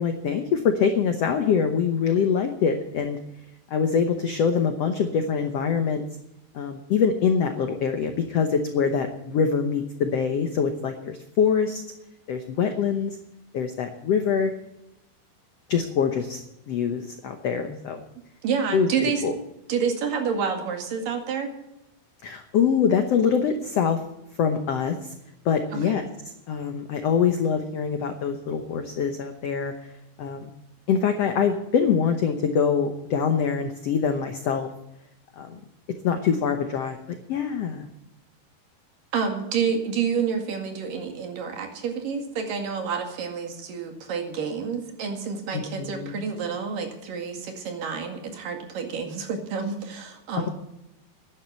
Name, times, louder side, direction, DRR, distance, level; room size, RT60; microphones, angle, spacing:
voice 1, 0.0-3.2 3.7-6.0 6.5-11.8 12.3-13.2 13.5-14.5 15.7-16.4 16.7-18.0 18.7-19.3 22.2-24.0 24.4-25.1 25.4-26.1 26.5-29.7 30.2-30.5 30.9-34.7 35.4-35.6 36.0-37.0 37.3-37.9 45.5-46.2, left 6 dB, 75° left, 6 dB, 1.4 m, -24 dB
voice 2, 18.4-19.2 19.7-21.5 25.9-26.0 39.1-50.5, right 6 dB, 65° right, 4 dB, 3.6 m, -29 dB
11.5 x 10.5 x 8.1 m, 0.89 s
omnidirectional pair, 4.4 m